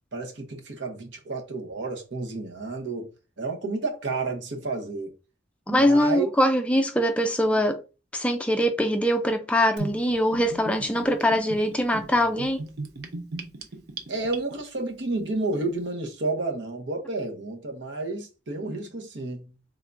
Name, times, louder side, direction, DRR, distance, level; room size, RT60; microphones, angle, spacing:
voice 1, 0.1-3.1 3.4-5.1 5.7-6.3 14.1-19.5, right 3 dB, 80° right, 0.9 m, -31 dB
voice 2, 5.7-7.8 8.1-12.6, equal, 5° left, 0.3 m, -23 dB
Gurgling / Bathtub (filling or washing), 9.8-14.8, right 3 dB, 55° right, 0.6 m, -37 dB
3.6 x 3.4 x 2.5 m
head